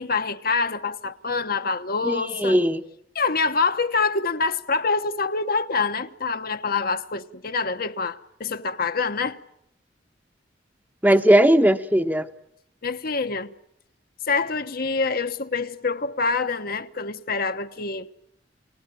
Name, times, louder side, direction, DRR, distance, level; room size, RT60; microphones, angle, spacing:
voice 1, 0.0-2.6 3.1-9.4 12.8-13.5 14.3-18.1, left 4 dB, 55° left, 1.1 m, -26 dB
voice 2, 2.0-2.8 11.0-12.3, right 1 dB, 10° right, 1.1 m, -18 dB
30.0 x 19.0 x 9.1 m
head